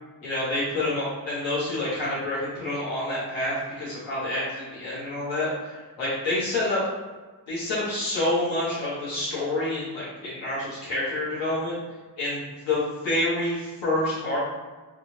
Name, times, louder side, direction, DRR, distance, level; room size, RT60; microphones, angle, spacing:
voice 1, 0.2-6.8 7.5-11.8 12.2-14.4, left 1 dB, 85° left, -10 dB, 1.4 m, -28 dB
3.5 x 2.4 x 2.9 m, 1.3 s
wide cardioid pair, 145°, 43 cm